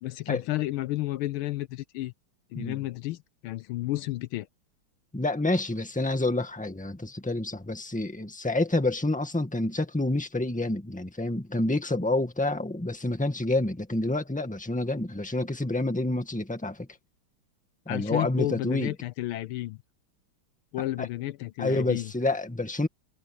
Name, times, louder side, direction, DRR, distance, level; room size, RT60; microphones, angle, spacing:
voice 1, 0.0-2.1 2.5-4.5 17.9-19.8 20.7-22.1, left 16 dB, 80° left, 1.4 m, -32 dB
voice 2, 5.1-16.9 17.8-18.9 21.0-21.1 21.6-22.9, left 2 dB, 5° left, 1.6 m, -28 dB
omnidirectional pair, 2.4 m